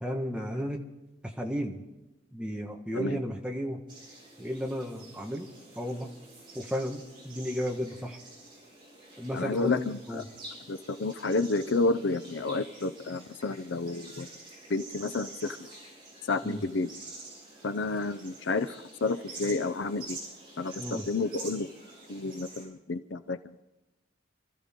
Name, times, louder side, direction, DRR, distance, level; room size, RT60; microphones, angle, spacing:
voice 1, 0.0-0.8 1.4-1.8 2.3-3.8 4.4-5.5 5.7-6.1 6.5-8.2 9.2-10.3 16.4-16.6 20.8-21.1, equal, 5° right, 1 dB, 1.4 m, -33 dB
sound 1, 3.9-22.7, right 2 dB, 25° right, 5.4 m, -48 dB
voice 2, 9.3-10.2 10.7-14.3 14.7-15.6 16.3-16.9 17.6-18.7 19.0-20.2 20.6-21.7 22.1-23.4, left 3 dB, 65° left, 12 dB, 0.6 m, -30 dB
27.0 x 13.5 x 3.7 m, 1.0 s
head